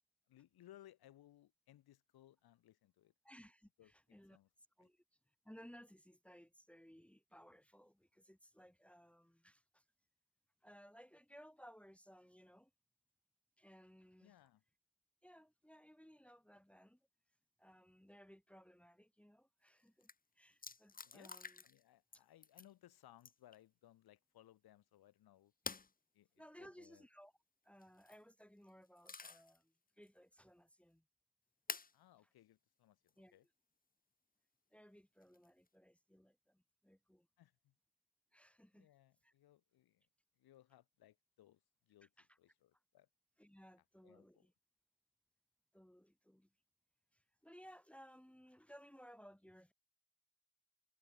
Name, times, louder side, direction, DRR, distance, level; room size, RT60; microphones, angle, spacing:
voice 1, 0.3-3.1 3.8-3.9 4.3-4.5 4.8-4.9 14.2-14.6 20.8-21.4 21.6-25.5 26.1-27.1 31.9-33.5 37.4-37.7 38.7-40.0 40.4-43.1 44.0-44.5, left 13 dB, 80° left, 7.8 m, -65 dB
voice 2, 3.2-4.4 4.8-5.0 5.4-9.8 10.6-12.7 13.6-14.4 15.2-17.0 17.6-20.1 20.4-21.6 22.1-22.2 26.4-27.3 27.6-31.0 33.2-33.4 34.7-37.3 38.3-38.9 39.2-39.3 42.2-42.4 43.4-44.5 45.7-46.5 47.1-49.7, equal, 5° left, 2.1 m, -61 dB
sound 1, 19.7-19.8 20.0-20.1 20.6-21.8 22.1-22.7 23.2-23.6 25.6-25.9 27.8-28.2 28.7-29.6 30.0-30.1 31.7-31.9 33.1-33.2 35.2-35.7, left 4 dB, 25° left, 1.3 m, -48 dB
cardioid pair, 80°, 37 cm